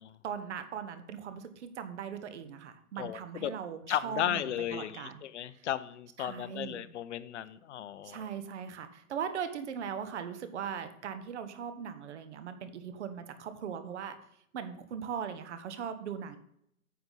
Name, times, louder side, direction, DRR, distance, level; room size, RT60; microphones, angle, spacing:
voice 1, 0.2-5.2 5.5-5.7 6.2-6.9 8.0-14.1 14.5-16.4, right 8 dB, 50° right, 10 dB, 1.3 m, -39 dB
voice 2, 3.0-3.5 3.9-8.3, left 11 dB, 55° left, 15 dB, 0.7 m, -35 dB
9.6 x 6.8 x 4.1 m, 0.72 s
hypercardioid pair, 155°, 43 cm